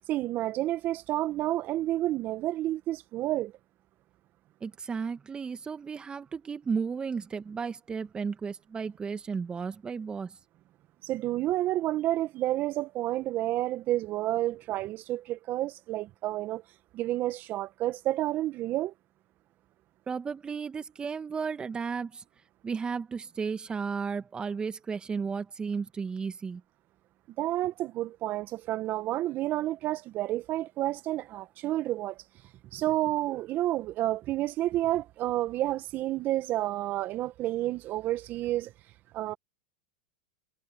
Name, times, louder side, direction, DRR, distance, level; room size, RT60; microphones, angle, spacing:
voice 1, 0.1-3.5 11.0-16.6 16.9-18.9 27.4-32.2 32.7-38.7 39.1-39.3, right 15 dB, 40° right, 1.8 m, -30 dB
voice 2, 4.6-10.3 20.1-22.2 22.6-26.6, right 5 dB, 20° right, 1.8 m, -34 dB
hypercardioid pair, 105°, 5 cm